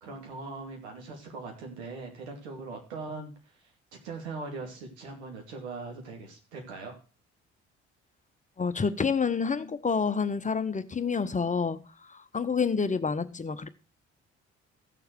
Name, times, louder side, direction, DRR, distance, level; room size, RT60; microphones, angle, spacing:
voice 1, 0.0-3.3 4.0-7.0, right 3 dB, 75° right, 2.4 m, -40 dB
voice 2, 8.6-13.7, left 5 dB, 20° left, 0.8 m, -28 dB
15.0 x 6.8 x 4.5 m
figure-of-eight pair, 45°, 33 cm